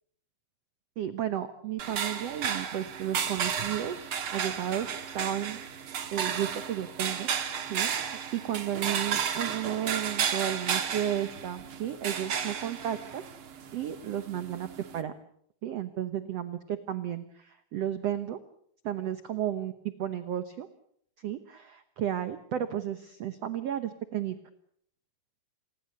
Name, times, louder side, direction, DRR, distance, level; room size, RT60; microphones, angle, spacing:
voice 1, 1.0-5.6 6.1-7.3 7.7-13.2 13.7-14.7 14.9-15.1 15.6-18.4 18.8-20.7 21.2-24.4, right 10 dB, 80° right, 11 dB, 1.4 m, -33 dB
sound 1, 1.8-15.0, right 7 dB, 50° right, 1.7 m, -33 dB
28.0 x 20.5 x 6.7 m, 0.66 s
omnidirectional pair, 4.5 m